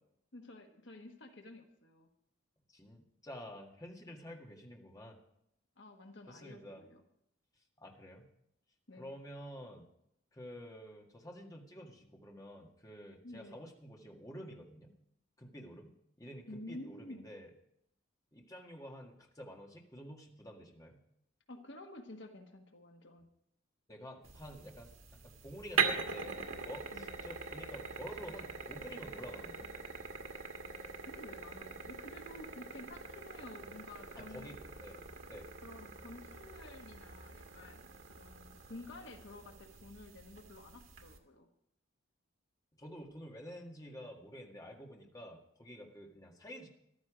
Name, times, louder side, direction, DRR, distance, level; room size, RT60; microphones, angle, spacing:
voice 1, 0.3-2.1 5.8-7.0 8.9-9.2 13.2-13.6 16.5-17.3 21.5-23.3 26.9-27.3 30.8-34.6 35.6-41.5, left 2 dB, 60° left, 4 dB, 1.4 m, -51 dB
voice 2, 2.7-5.2 6.3-6.8 7.8-8.2 9.0-9.9 10.3-14.9 15.4-17.5 18.3-21.0 23.9-24.9 25.2-29.7 34.2-35.5 42.8-46.7, equal, 20° left, 0 dB, 1.8 m, -50 dB
sound 1, 24.2-41.2, right 5 dB, 90° right, 1.7 m, -42 dB
14.0 x 12.5 x 5.0 m, 0.76 s
head